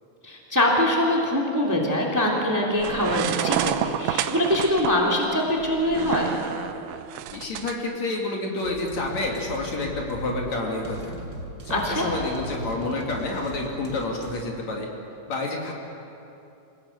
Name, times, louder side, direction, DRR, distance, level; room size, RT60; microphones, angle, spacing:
voice 1, 0.2-6.3 11.7-12.0, left 1 dB, 5° right, -1 dB, 2.6 m, -23 dB
sound 1, 2.8-7.8, right 11 dB, 85° right, 2.4 m, -29 dB
voice 2, 7.3-11.1 11.6-14.9 15.3-15.7, left 2 dB, 55° left, 0 dB, 3.4 m, -29 dB
sound 2, 8.6-14.4, right 2 dB, 35° right, 2.2 m, -38 dB
27.0 x 18.0 x 8.0 m, 2.7 s
omnidirectional pair, 3.8 m